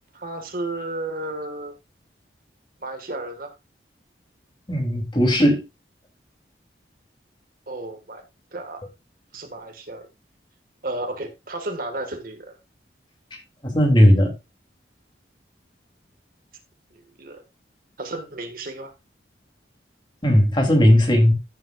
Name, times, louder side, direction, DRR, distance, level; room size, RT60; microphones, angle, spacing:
voice 1, 0.1-1.7 2.8-3.5 7.7-8.2 8.5-8.8 9.3-10.1 10.8-12.6 17.2-17.4 18.0-18.9, right 2 dB, 50° right, 1.7 m, -32 dB
voice 2, 4.7-5.6 13.6-14.3 20.2-21.3, equal, 25° left, 2.9 m, -16 dB
14.5 x 7.5 x 2.4 m
head